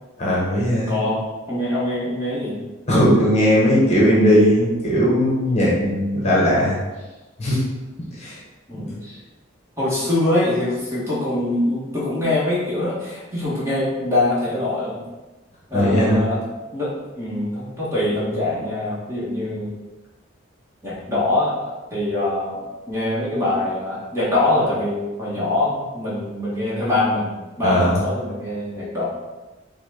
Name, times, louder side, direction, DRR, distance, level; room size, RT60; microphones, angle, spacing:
voice 1, 0.2-0.9 2.9-6.7 7.4-7.6 8.2-8.4 8.8-8.9 15.7-16.2 27.6-28.0, equal, 35° left, -6 dB, 1.0 m, -18 dB
voice 2, 0.9-2.6 8.7-9.2 9.8-15.0 15.7-16.4 16.7-19.7 20.8-22.6 22.9-29.1, left 1 dB, 15° right, -8 dB, 1.3 m, -23 dB
5.8 x 2.2 x 3.7 m, 1.1 s
head